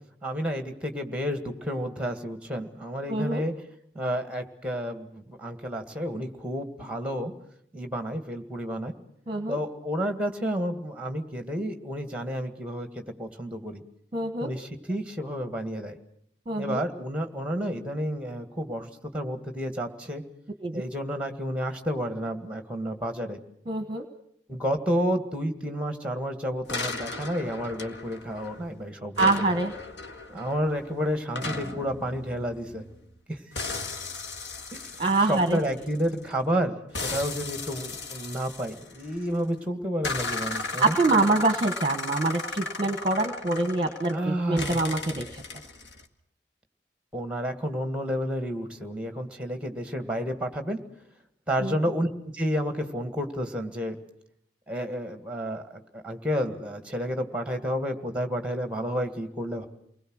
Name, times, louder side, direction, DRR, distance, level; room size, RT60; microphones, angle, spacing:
voice 1, 0.2-3.5 4.0-7.3 7.7-8.9 9.5-13.8 14.4-16.0 16.6-20.2 20.7-23.4 24.5-29.5 30.3-32.8 33.3-33.4 34.7-34.9 35.2-41.0 44.1-44.9 47.1-50.8 51.5-52.1 52.3-54.0 54.7-59.7, equal, 5° right, 7 dB, 2.0 m, -30 dB
voice 2, 3.1-3.4 9.3-9.6 14.1-14.5 16.5-16.8 20.6-20.8 23.7-24.0 29.2-29.7 35.0-35.6 40.8-45.4 51.6-51.7, right 2 dB, 25° right, 7 dB, 1.2 m, -25 dB
sound 1, 26.7-28.7 29.2-33.2 33.6-36.3 36.9-39.4 40.0-44.2 44.6-46.0, left 3 dB, 75° left, 1.9 m, -36 dB
29.5 x 20.5 x 6.4 m, 0.70 s
head